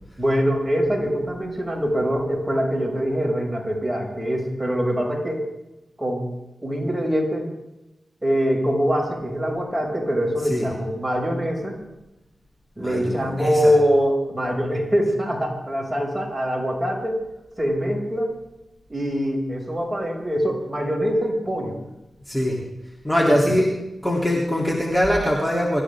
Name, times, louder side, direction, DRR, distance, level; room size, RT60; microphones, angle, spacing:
voice 1, 0.2-5.5 6.0-6.3 6.6-7.5 8.2-11.8 12.8-17.2 17.6-18.3 18.9-21.8 23.1-23.4, equal, 15° right, -1 dB, 6.7 m, -23 dB
voice 2, 12.8-13.7 22.3-22.6 23.0-23.7 24.0-25.8, equal, 15° left, -2 dB, 3.3 m, -22 dB
25.5 x 14.0 x 3.7 m, 0.96 s
cardioid pair, 50°, 0 cm